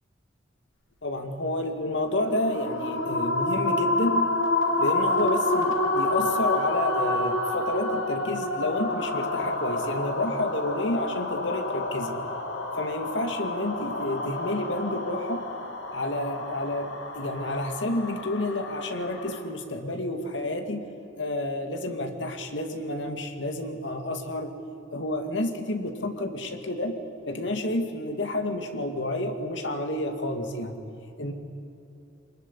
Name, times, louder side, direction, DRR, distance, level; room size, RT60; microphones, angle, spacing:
voice 1, 1.0-4.3 4.8-12.2 12.8-15.4 15.9-16.9 17.1-20.8 21.2-24.5 24.9-26.9 27.3-30.8 31.2-31.3, left 1 dB, 70° left, 5 dB, 2.4 m, -30 dB
sound 1, 2.1-19.4, left 2 dB, 85° left, 3.3 m, -29 dB
24.5 x 20.5 x 10.0 m, 2.9 s
head